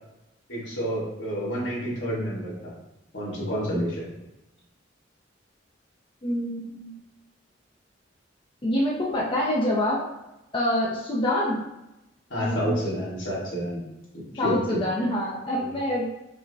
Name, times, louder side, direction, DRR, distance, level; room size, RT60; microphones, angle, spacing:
voice 1, 0.5-2.5 3.1-4.0 12.3-13.8 14.1-14.8 15.6-15.7, equal, 80° left, -6 dB, 1.4 m, -29 dB
voice 2, 6.2-7.0 8.6-10.0 10.5-11.6 12.4-13.1 14.4-16.1, left 1 dB, 30° left, -4 dB, 0.5 m, -26 dB
5.3 x 2.1 x 2.6 m, 0.94 s
head